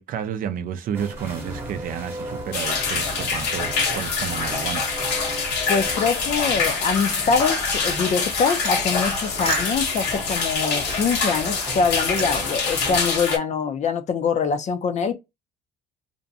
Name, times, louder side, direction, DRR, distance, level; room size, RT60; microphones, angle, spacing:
voice 1, 0.0-5.0, right 8 dB, 55° right, 0.4 m, -31 dB
sound 1, 0.9-13.0, right 1 dB, 15° right, 0.9 m, -36 dB
sound 2, 2.5-13.4, left 4 dB, 85° left, 1.0 m, -25 dB
voice 2, 5.7-15.1, left 5 dB, 45° left, 0.5 m, -24 dB
sound 3, 8.6-10.1 10.6-11.5 11.8-13.3, right 8 dB, 85° right, 0.7 m, -37 dB
2.6 x 2.1 x 2.6 m
cardioid pair, 110°, 17 cm